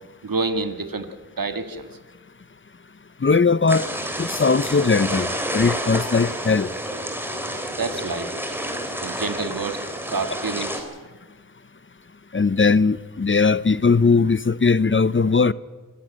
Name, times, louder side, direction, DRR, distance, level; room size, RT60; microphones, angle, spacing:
voice 1, 0.2-1.1 1.4-1.9 7.5-8.3 9.0-10.9, right 4 dB, 80° right, 1.7 m, -28 dB
voice 2, 3.2-3.9 4.2-5.3 5.5-6.7 12.3-15.5, left 4 dB, 35° left, 0.6 m, -19 dB
sound 1, 3.7-10.8, equal, 5° right, 3.5 m, -29 dB
24.5 x 11.5 x 10.0 m
wide cardioid pair, 55°, 34 cm